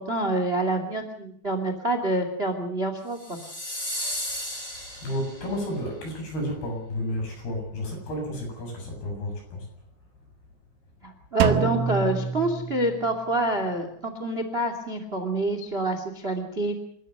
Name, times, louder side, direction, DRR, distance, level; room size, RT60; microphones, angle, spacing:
voice 1, 0.0-3.4 11.0-16.7, right 2 dB, 20° right, 7 dB, 1.8 m, -27 dB
sound 1, 3.2-5.6, left 1 dB, 15° left, 7.1 m, -34 dB
voice 2, 5.0-9.7, left 1 dB, 60° left, 2 dB, 9.5 m, -31 dB
Drum, 11.4-13.3, right 7 dB, 85° right, 3.4 m, -27 dB
29.0 x 14.0 x 7.8 m, 0.65 s
omnidirectional pair, 5.1 m